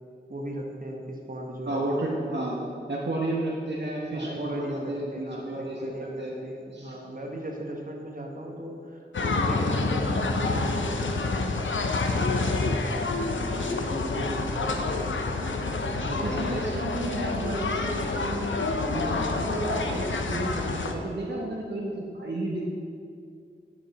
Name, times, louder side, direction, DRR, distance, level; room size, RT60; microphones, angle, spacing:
voice 1, 0.3-2.1 4.1-11.6 12.0-17.2, right 1 dB, 45° right, 0 dB, 1.2 m, -37 dB
voice 2, 1.7-2.6 2.9-5.9 6.2-6.3 6.7-6.9 13.3-13.6 16.0-18.5 18.9-22.6, right 1 dB, 65° right, -3 dB, 1.0 m, -32 dB
sound 1, 9.1-20.9, left 3 dB, 85° left, 0.6 m, -28 dB
11.0 x 5.2 x 4.1 m, 2.4 s
wide cardioid pair, 40°, 19 cm